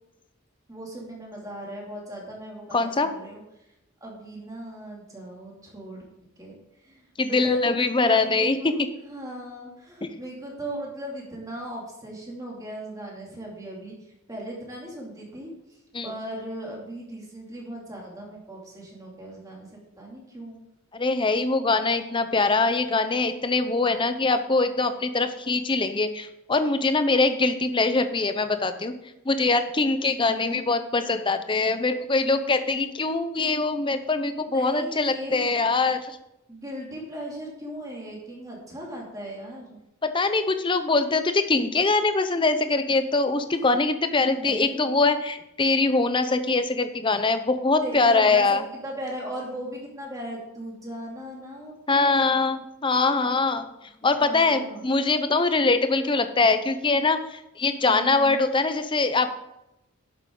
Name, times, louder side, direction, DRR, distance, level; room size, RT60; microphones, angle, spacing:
voice 1, 0.7-3.4 4.0-6.0 6.4-6.5 6.8-15.8 16.0-20.6 30.2-30.6 34.4-35.4 36.5-39.8 44.3-44.9 47.8-52.4 54.0-54.9 57.9-58.4, right 1 dB, 15° right, -2 dB, 2.7 m, -38 dB
voice 2, 2.7-3.1 7.2-8.7 10.0-10.1 15.9-16.1 20.9-28.9 29.3-36.2 40.0-48.6 51.9-53.7 54.0-59.3, left 3 dB, 25° left, 9 dB, 0.7 m, -23 dB
11.0 x 8.0 x 3.9 m, 0.87 s
head